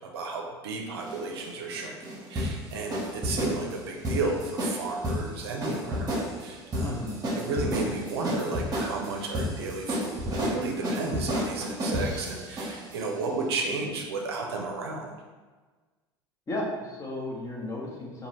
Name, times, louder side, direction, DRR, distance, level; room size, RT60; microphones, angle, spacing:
voice 1, 0.0-7.0 7.3-15.1, right 3 dB, 70° right, 1 dB, 0.6 m, -33 dB
sound 1, 1.0-13.0, equal, 30° right, 1.0 m, -31 dB
voice 2, 6.8-7.2 16.5-18.3, left 1 dB, 25° left, -2 dB, 1.0 m, -34 dB
3.8 x 2.7 x 3.0 m, 1.3 s
figure-of-eight pair, 70°, 14 cm